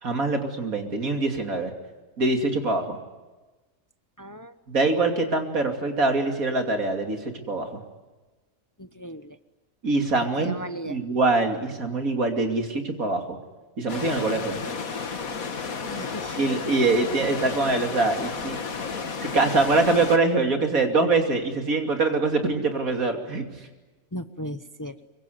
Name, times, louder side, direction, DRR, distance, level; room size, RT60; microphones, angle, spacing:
voice 1, 0.0-1.7 2.2-3.0 4.7-7.8 9.8-10.6 10.8-13.4 13.8-14.6 16.4-18.6 19.2-23.4, right 3 dB, 85° right, 4 dB, 3.3 m, -24 dB
voice 2, 4.2-4.5 8.8-9.4 10.4-11.0 15.7-16.4 24.1-25.0, equal, 15° left, 11 dB, 0.8 m, -36 dB
sound 1, 13.9-20.2, left 5 dB, 90° left, 2.1 m, -32 dB
25.0 x 23.5 x 9.5 m, 1.2 s
omnidirectional pair, 1.4 m